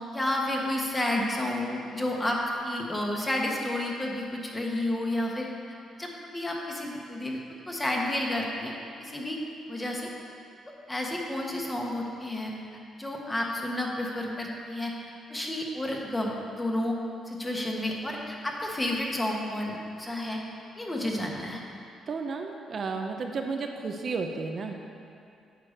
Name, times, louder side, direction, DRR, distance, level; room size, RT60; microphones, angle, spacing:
voice 1, 0.1-5.5 6.0-7.4 7.7-8.7 9.0-9.4 9.7-10.1 10.7-12.5 12.9-14.9 15.3-17.0 17.3-20.4 20.8-21.6, left 1 dB, 15° left, -1 dB, 1.4 m, -31 dB
voice 2, 22.1-24.8, right 4 dB, 50° right, 3 dB, 0.6 m, -32 dB
8.9 x 4.8 x 6.6 m, 2.5 s
cardioid pair, 90°, 0 cm